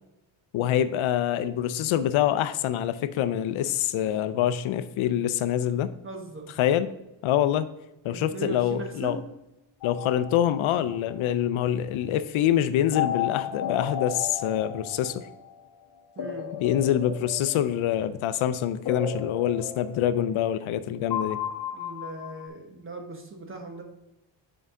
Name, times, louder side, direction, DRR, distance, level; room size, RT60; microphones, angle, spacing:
voice 1, 0.5-5.9 6.6-6.9 7.2-7.7 8.0-9.2 9.8-15.3 16.6-21.4, left 11 dB, 80° left, 13 dB, 0.6 m, -25 dB
voice 2, 6.0-6.5 8.1-9.2 16.2-16.5 21.7-23.8, right 3 dB, 25° right, 3 dB, 1.1 m, -38 dB
sound 1, 9.8-11.1 12.9-15.5 16.2-18.1 18.9-20.8 21.1-22.5, left 8 dB, 50° left, 1.1 m, -34 dB
8.0 x 4.7 x 3.6 m, 0.96 s
cardioid pair, 130°, 48 cm